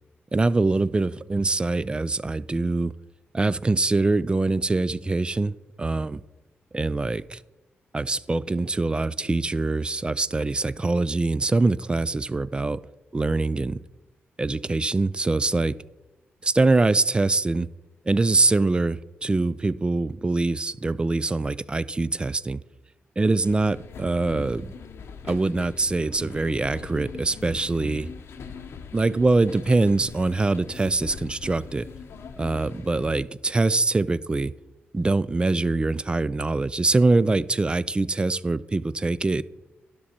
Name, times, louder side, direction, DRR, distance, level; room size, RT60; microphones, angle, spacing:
voice 1, 0.3-2.9 3.3-6.2 6.7-7.4 7.9-12.8 13.1-13.8 14.4-15.7 16.4-17.7 18.1-22.6 23.2-24.7 25.2-28.1 28.9-31.8 32.4-34.5 34.9-39.4, right 3 dB, 25° right, 18 dB, 0.3 m, -23 dB
sound 1, 23.4-33.2, left 6 dB, 80° left, 0.7 m, -41 dB
11.0 x 6.0 x 4.2 m, 1.0 s
cardioid pair, 80°, 4 cm